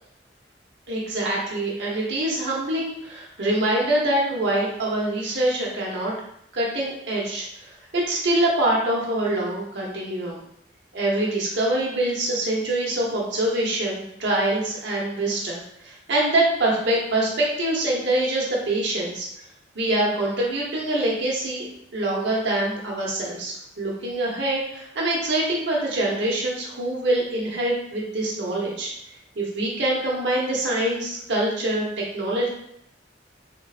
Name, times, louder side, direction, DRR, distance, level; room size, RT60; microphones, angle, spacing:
voice 1, 0.9-6.1 6.5-10.4 10.9-19.3 19.7-21.7 21.9-28.9 29.4-31.8 32.1-32.5, right 1 dB, 85° right, -4 dB, 0.9 m, -25 dB
3.7 x 2.1 x 2.4 m, 0.74 s
head